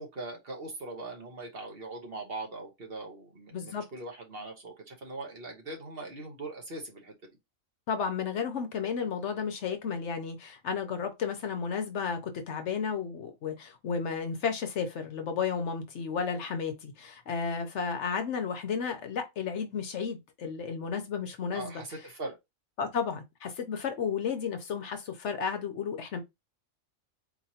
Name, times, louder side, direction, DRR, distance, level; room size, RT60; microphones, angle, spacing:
voice 1, 0.0-7.1 21.5-22.4, right 2 dB, 50° right, 1.2 m, -41 dB
voice 2, 3.5-3.8 7.9-21.8 22.8-26.2, left 6 dB, 65° left, 1.0 m, -33 dB
4.4 x 3.0 x 2.7 m
omnidirectional pair, 1.4 m